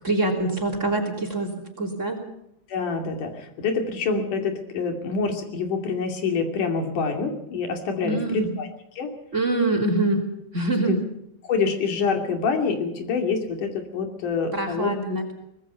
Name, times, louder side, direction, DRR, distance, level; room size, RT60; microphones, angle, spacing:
voice 1, 0.0-2.2 8.0-8.5 9.3-10.2 10.5-11.0 14.5-15.3, right 2 dB, 25° right, 4 dB, 3.4 m, -25 dB
voice 2, 2.7-8.7 9.0-9.1 10.9-11.0 11.4-14.9, left 4 dB, 90° left, 5 dB, 4.2 m, -26 dB
23.5 x 20.0 x 5.6 m, 0.82 s
omnidirectional pair, 3.5 m